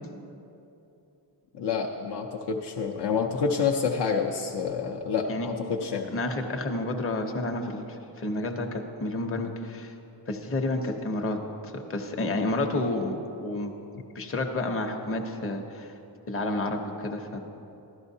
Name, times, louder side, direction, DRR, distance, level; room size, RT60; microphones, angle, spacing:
voice 1, 1.5-6.1, left 5 dB, 70° left, 0 dB, 0.7 m, -28 dB
voice 2, 6.1-9.9 10.3-13.2 13.4-13.7 14.1-15.9 16.3-17.4, left 2 dB, 30° left, 3 dB, 0.8 m, -30 dB
14.5 x 12.0 x 2.7 m, 2.8 s
wide cardioid pair, 130°, 43 cm